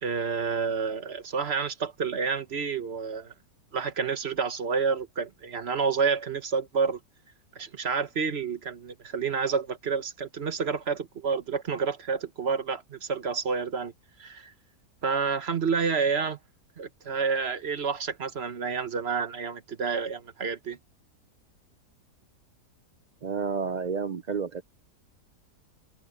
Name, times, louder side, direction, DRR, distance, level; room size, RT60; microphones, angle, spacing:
voice 1, 0.0-3.3 3.7-7.0 7.5-13.9 14.2-14.5 15.0-16.4 16.8-20.8, right 5 dB, 45° right, 1.4 m, -29 dB
voice 2, 23.2-24.6, right 5 dB, 70° right, 0.4 m, -30 dB
omnidirectional pair, 1.7 m